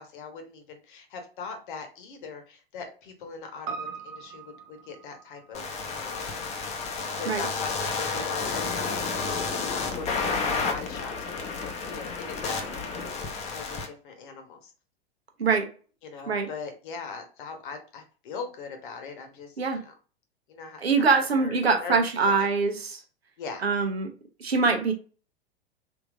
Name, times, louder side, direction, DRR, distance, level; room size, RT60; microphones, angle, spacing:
voice 1, 0.0-6.3 7.2-9.2 9.6-14.7 16.0-19.9 20.5-22.5 23.4-23.6, left 5 dB, 55° left, 1.1 m, -40 dB
Piano, 3.7-8.2 8.5-8.6, right 5 dB, 30° right, 0.6 m, -42 dB
sound 1, 5.5-13.9, left 4 dB, 20° left, 0.7 m, -31 dB
voice 2, 20.8-23.0 23.6-24.1 24.4-24.9, right 4 dB, 80° right, 0.8 m, -23 dB
3.5 x 2.7 x 2.5 m
figure-of-eight pair, 95°, 31 cm